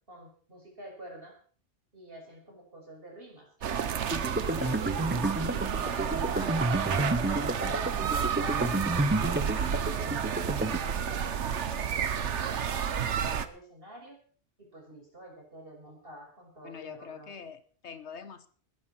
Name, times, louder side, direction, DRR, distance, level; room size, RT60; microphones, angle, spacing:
voice 1, 0.1-1.3 1.9-6.9 7.2-14.2 14.6-17.3, right 1 dB, 55° right, 0 dB, 6.6 m, -47 dB
sound 1, 3.6-13.5, right 8 dB, 85° right, 1.3 m, -31 dB
sound 2, 4.1-10.8, right 1 dB, 10° right, 0.7 m, -31 dB
voice 2, 4.4-4.8 16.6-18.5, left 6 dB, 75° left, 12 dB, 1.5 m, -44 dB
20.0 x 12.5 x 4.5 m, 0.43 s
omnidirectional pair, 1.2 m